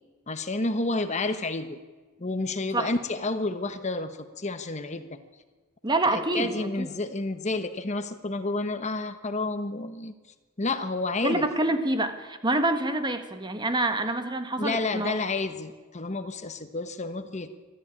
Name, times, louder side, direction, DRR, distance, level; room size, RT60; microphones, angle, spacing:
voice 1, 0.3-1.8 2.2-5.2 6.1-10.1 10.6-11.4 14.6-17.5, left 2 dB, 35° left, 9 dB, 1.1 m, -30 dB
voice 2, 5.8-6.9 11.2-15.2, right 2 dB, 20° right, 8 dB, 1.5 m, -27 dB
21.5 x 14.0 x 9.9 m, 1.3 s
head